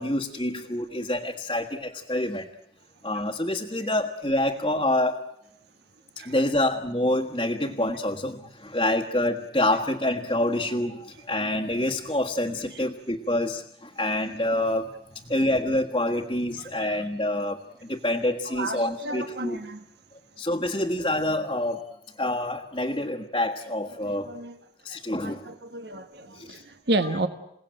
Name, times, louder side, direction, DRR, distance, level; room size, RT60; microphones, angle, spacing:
voice 1, 0.0-2.5 3.0-5.2 6.2-14.9 15.2-19.6 20.4-21.8 22.2-24.3 24.8-25.5 26.3-26.6, left 1 dB, 25° left, -1 dB, 1.5 m, -27 dB
voice 2, 16.6-16.9 18.4-19.9 24.1-24.6 24.9-27.3, right 2 dB, 65° right, 8 dB, 1.5 m, -32 dB
28.0 x 18.0 x 9.1 m, 0.79 s
head